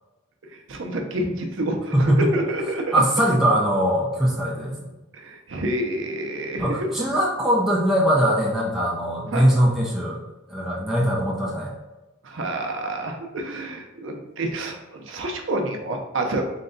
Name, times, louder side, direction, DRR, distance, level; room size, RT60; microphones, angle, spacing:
voice 1, 0.5-3.0 5.1-6.9 9.3-9.4 12.2-16.4, right 1 dB, 75° right, 3 dB, 0.6 m, -28 dB
voice 2, 2.9-4.8 6.6-10.2 10.5-11.7, equal, ahead, -5 dB, 0.5 m, -21 dB
3.9 x 2.2 x 3.8 m, 1.1 s
head